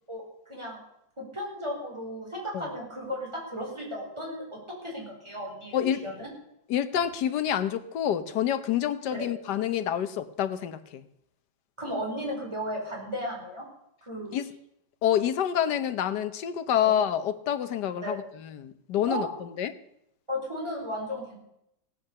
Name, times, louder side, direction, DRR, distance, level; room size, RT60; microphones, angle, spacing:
voice 1, 0.1-0.8 1.2-6.3 9.1-9.2 11.8-13.6 14.0-14.3 16.8-17.0 18.0-18.2 19.1-19.3 20.3-21.4, equal, 15° right, -2 dB, 4.9 m, -35 dB
voice 2, 6.7-11.0 14.3-14.5 15.0-19.7, left 10 dB, 65° left, 11 dB, 1.5 m, -28 dB
17.0 x 8.8 x 7.0 m, 0.79 s
omnidirectional pair, 2.1 m